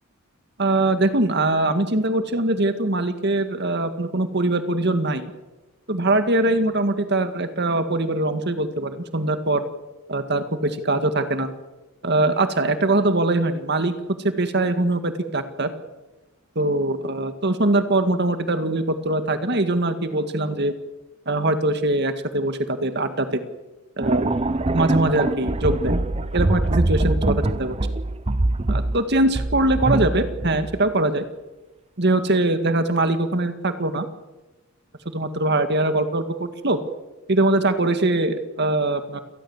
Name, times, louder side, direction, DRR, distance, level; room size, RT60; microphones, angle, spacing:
voice 1, 0.6-5.3 5.9-9.6 10.1-11.5 12.0-13.9 14.4-15.7 16.6-20.7 21.3-23.4 24.0-24.3 24.7-26.0 26.3-27.8 28.7-31.3 32.0-34.1 35.1-36.8 37.3-39.2, right 2 dB, 55° right, 9 dB, 1.9 m, -22 dB
sound 1, 24.0-30.9, right 2 dB, 30° right, 0.7 m, -24 dB
28.0 x 19.5 x 7.3 m, 1.1 s
head